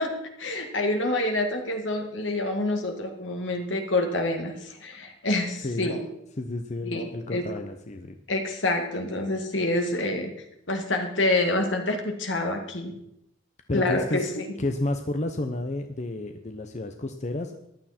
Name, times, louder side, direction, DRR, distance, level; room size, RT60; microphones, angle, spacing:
voice 1, 0.0-6.0 6.8-7.4 8.3-10.3 10.7-13.0 13.7-14.4, left 2 dB, 70° left, 4 dB, 2.2 m, -27 dB
voice 2, 5.6-5.9 6.4-8.2 13.7-14.3 14.6-17.7, left 2 dB, 40° left, 6 dB, 0.8 m, -31 dB
15.0 x 11.5 x 4.4 m, 0.79 s
head